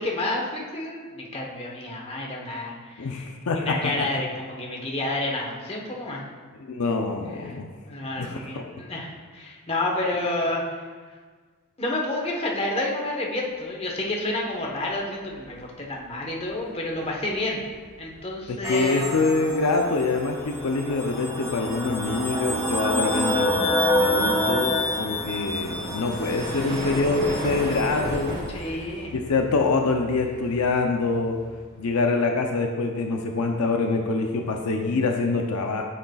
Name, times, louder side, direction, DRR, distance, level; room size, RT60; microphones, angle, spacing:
voice 1, 0.0-3.2 3.5-6.3 7.3-7.6 7.9-10.8 11.8-17.6 18.0-19.3 28.5-29.1, left 2 dB, 25° left, -1 dB, 1.1 m, -30 dB
voice 2, 3.0-4.1 6.7-7.7 8.2-8.6 18.5-28.4 29.1-31.4 31.8-35.8, left 3 dB, 80° left, 3 dB, 0.6 m, -25 dB
sound 1, 14.6-14.9 15.3-32.0, equal, 60° right, 2.2 m, -38 dB
sound 2, 18.6-28.4, left 1 dB, 15° right, 1.0 m, -27 dB
9.5 x 6.6 x 2.3 m, 1.5 s
head